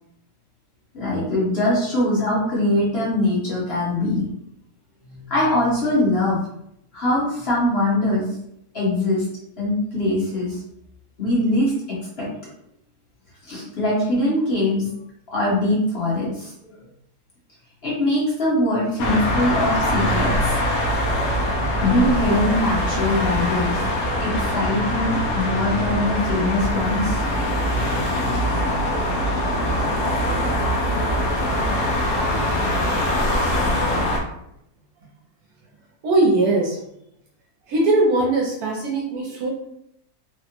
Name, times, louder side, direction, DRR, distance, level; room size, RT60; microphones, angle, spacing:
voice 1, 0.9-4.2 5.1-6.4 6.9-8.3 8.7-9.2 9.6-10.6 11.2-11.7 12.2-12.3 13.5-14.9 15.3-16.7 17.8-20.5 21.8-23.8 24.2-27.2, left 1 dB, 45° left, -6 dB, 1.1 m, -22 dB
sound 1, 19.0-34.2, left 1 dB, 70° left, 1.0 m, -22 dB
voice 2, 36.0-36.8 37.7-39.5, right 2 dB, 80° right, -2 dB, 1.1 m, -20 dB
3.5 x 2.0 x 2.8 m, 0.76 s
omnidirectional pair, 1.6 m